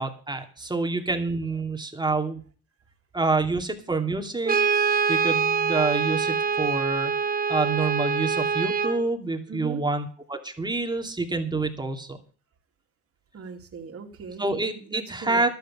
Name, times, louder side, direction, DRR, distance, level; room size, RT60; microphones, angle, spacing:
voice 1, 0.0-2.4 3.1-7.1 7.5-12.2 14.4-15.5, right 3 dB, 15° right, 2.5 m, -27 dB
Brass instrument, 4.4-9.0, right 6 dB, 30° right, 1.1 m, -24 dB
voice 2, 9.5-9.8 13.3-14.5 14.7-15.5, right 4 dB, 50° right, 2.7 m, -39 dB
12.0 x 8.1 x 7.5 m
cardioid pair, 90°, 30 cm